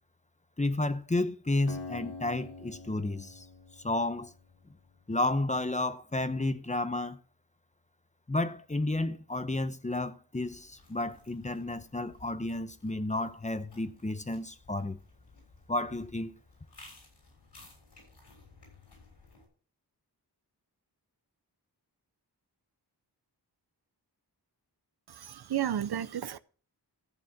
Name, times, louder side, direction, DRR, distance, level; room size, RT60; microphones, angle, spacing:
voice 1, 0.6-3.4 3.8-4.3 5.1-7.2 8.3-15.0 15.7-16.3, left 2 dB, 15° left, 0.8 m, -31 dB
Acoustic guitar, 1.7-5.2, left 3 dB, 65° left, 1.9 m, -46 dB
sound 1, 10.4-19.5, left 3 dB, 85° left, 6.6 m, -57 dB
voice 2, 25.1-26.4, right 10 dB, 70° right, 0.6 m, -32 dB
14.5 x 7.1 x 5.8 m
wide cardioid pair, 80°, 41 cm